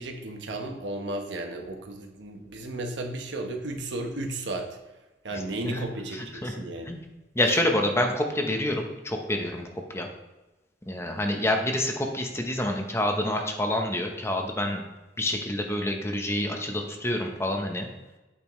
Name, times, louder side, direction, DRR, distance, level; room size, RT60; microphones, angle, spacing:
voice 1, 0.0-4.8 5.2-6.9, right 2 dB, 75° right, 3 dB, 1.2 m, -34 dB
voice 2, 5.3-5.9 6.1-7.0 7.3-10.1 10.9-14.8 15.2-17.9, left 1 dB, 15° left, 3 dB, 0.9 m, -28 dB
8.7 x 6.8 x 3.2 m, 1.1 s
head